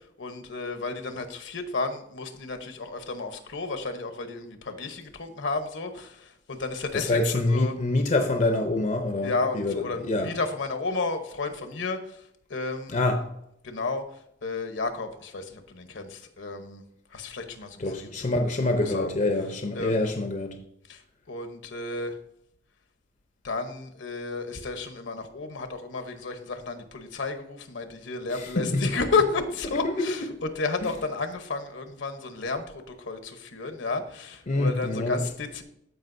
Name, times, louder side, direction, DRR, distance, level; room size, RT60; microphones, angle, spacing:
voice 1, 0.2-7.7 9.2-12.0 12.5-13.0 13.6-14.0 14.4-16.8 17.1-18.1 18.7-19.1 19.7-20.1 20.9-21.0 21.3-22.1 23.4-30.2 30.6-35.6, left 3 dB, 70° left, 1.0 m, -32 dB
voice 2, 6.9-10.3 12.9-13.3 17.8-20.6 28.3-28.9 29.7-30.0 30.3-30.4 30.8-30.9 34.5-35.2, left 2 dB, 40° left, 0.7 m, -26 dB
14.0 x 5.1 x 2.6 m
head